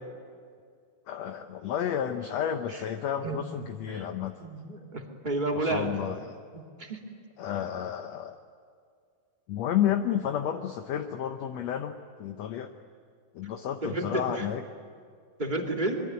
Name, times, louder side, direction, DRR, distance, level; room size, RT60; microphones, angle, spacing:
voice 1, 1.1-4.4 5.5-6.4 7.4-8.4 9.5-12.7 13.3-14.7, left 9 dB, 70° left, 6 dB, 1.7 m, -31 dB
voice 2, 4.4-5.9 6.5-6.6 6.9-7.0 13.8-14.4 15.4-16.0, right 2 dB, 15° right, 1 dB, 2.2 m, -31 dB
25.5 x 23.0 x 9.5 m, 2.2 s
omnidirectional pair, 4.0 m